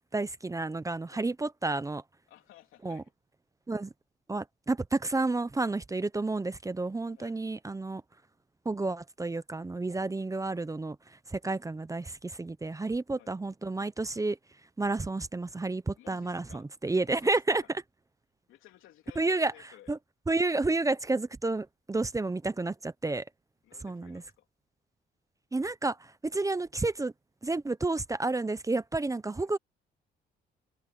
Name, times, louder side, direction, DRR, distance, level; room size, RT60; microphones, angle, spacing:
voice 1, 0.1-2.0 2.8-3.0 3.7-3.9 4.3-8.0 8.6-11.0 11.3-14.4 14.8-17.6 19.2-19.5 19.9-20.0 20.3-23.3 23.8-24.2 25.5-27.1 27.4-29.6, right 3 dB, 15° right, 0.8 m, -30 dB
voice 2, 2.3-3.1 7.1-7.4 10.1-10.3 13.1-13.3 15.9-16.7 17.1-17.6 18.5-19.9 23.6-24.5 29.4-29.5, left 13 dB, 85° left, 3.5 m, -56 dB
cardioid pair, 90°, 20 cm